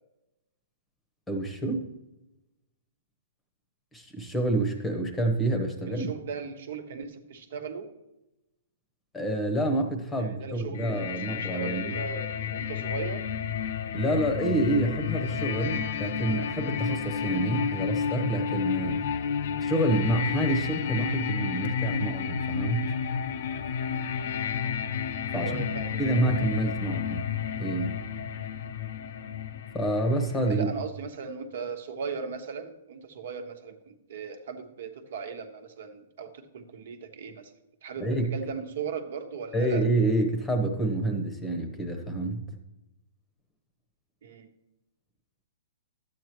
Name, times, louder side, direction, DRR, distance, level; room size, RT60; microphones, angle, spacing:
voice 1, 1.3-1.9 3.9-6.1 9.1-11.9 13.9-19.0 19.6-22.9 25.3-25.7 26.0-27.2 27.6-28.0 29.7-30.7 38.0-38.3 39.5-42.5, right 1 dB, 5° left, 5 dB, 1.0 m, -28 dB
voice 2, 5.9-7.9 10.2-13.2 18.9-19.0 21.6-21.8 25.3-26.2 30.5-37.5 37.8-39.8 44.2-44.5, right 5 dB, 60° right, 6 dB, 1.2 m, -38 dB
sound 1, 10.7-30.5, left 7 dB, 55° left, 0.6 m, -31 dB
12.0 x 8.4 x 3.1 m, 0.92 s
hypercardioid pair, 165°, 0 cm